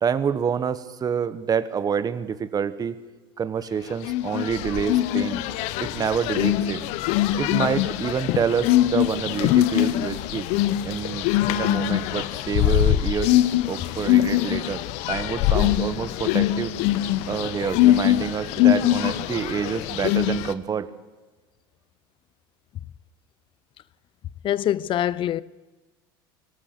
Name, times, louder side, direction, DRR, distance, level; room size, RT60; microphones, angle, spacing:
voice 1, 0.0-3.0 3.4-5.4 5.8-6.8 7.4-10.5 10.8-13.4 13.6-16.7 17.3-20.9, right 7 dB, 30° right, 1.4 m, -27 dB
sound 1, 4.0-20.5, left 14 dB, 65° left, 1.1 m, -23 dB
voice 2, 24.4-25.4, left 11 dB, 45° left, 0.7 m, -24 dB
23.0 x 18.0 x 6.8 m
hypercardioid pair, 90°, 12 cm